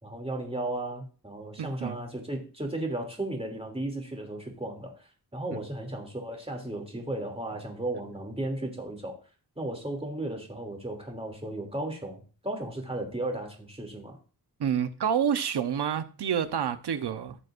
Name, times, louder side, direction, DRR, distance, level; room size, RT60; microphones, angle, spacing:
voice 1, 0.0-9.1 9.6-14.2, right 1 dB, 15° right, 2.8 m, -35 dB
voice 2, 1.6-2.0 5.5-5.6 14.6-17.4, right 8 dB, 85° right, 0.9 m, -28 dB
15.0 x 6.6 x 2.6 m
wide cardioid pair, 90°, 39 cm